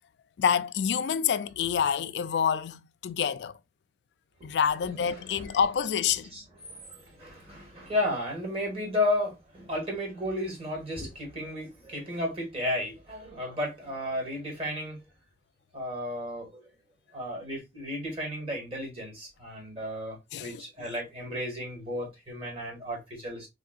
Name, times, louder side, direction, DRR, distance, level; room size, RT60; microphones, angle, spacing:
voice 1, 0.4-3.5 4.4-6.3 20.3-20.9, left 7 dB, 75° left, 0.3 m, -27 dB
voice 2, 4.4-15.0 15.7-16.7 17.1-23.5, left 1 dB, 35° right, 1.8 m, -34 dB
3.7 x 3.7 x 2.4 m
head